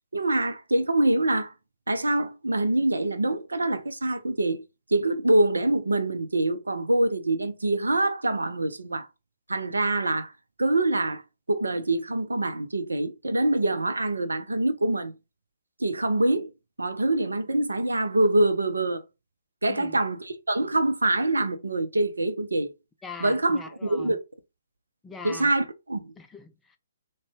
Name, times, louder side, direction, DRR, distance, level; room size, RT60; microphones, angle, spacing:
voice 1, 0.1-1.5 1.9-4.6 4.9-9.1 9.5-10.3 10.6-11.2 11.5-15.1 15.8-16.5 16.8-19.0 19.6-22.7 23.2-24.2 25.2-26.1, right 2 dB, 80° right, 0.5 m, -25 dB
voice 2, 19.7-20.0 23.0-24.2 25.0-25.5 26.2-26.8, left 4 dB, 10° left, 0.4 m, -42 dB
3.7 x 2.1 x 3.5 m
figure-of-eight pair, 130°, 0 cm